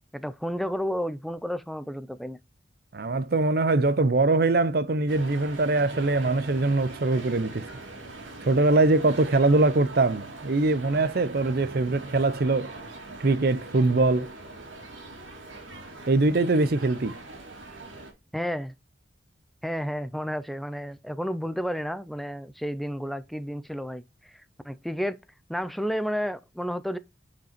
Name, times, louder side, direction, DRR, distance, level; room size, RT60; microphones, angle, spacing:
voice 1, 0.1-2.4 18.3-18.7 19.6-25.2 25.5-27.0, equal, ahead, 0.4 m, -31 dB
voice 2, 2.9-7.7 8.4-12.7 13.2-14.3 16.1-17.2, right 2 dB, 55° right, 0.6 m, -22 dB
sound 1, 5.1-18.1, right 2 dB, 90° right, 2.5 m, -42 dB
5.6 x 5.2 x 4.3 m
head